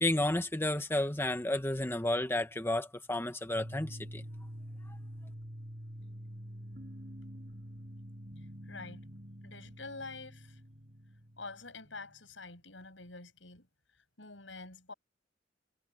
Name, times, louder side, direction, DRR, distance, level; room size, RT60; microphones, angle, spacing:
voice 1, 0.0-4.2 4.9-5.0, left 1 dB, 15° left, 1.2 m, -32 dB
sound 1, 3.5-12.3, equal, 50° right, 6.0 m, -47 dB
voice 2, 8.6-9.0 9.4-10.6 11.4-13.7 14.2-14.9, left 3 dB, 90° left, 7.9 m, -47 dB
head